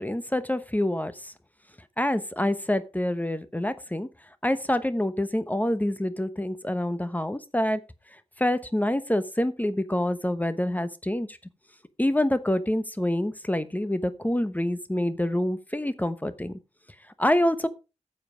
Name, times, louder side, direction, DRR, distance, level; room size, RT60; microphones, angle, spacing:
voice 1, 0.0-1.3 2.0-4.1 4.4-7.8 8.4-11.4 12.0-16.5 17.2-17.7, left 1 dB, 15° left, 1.0 m, -26 dB
9.5 x 7.5 x 4.9 m
wide cardioid pair, 85°, 12 cm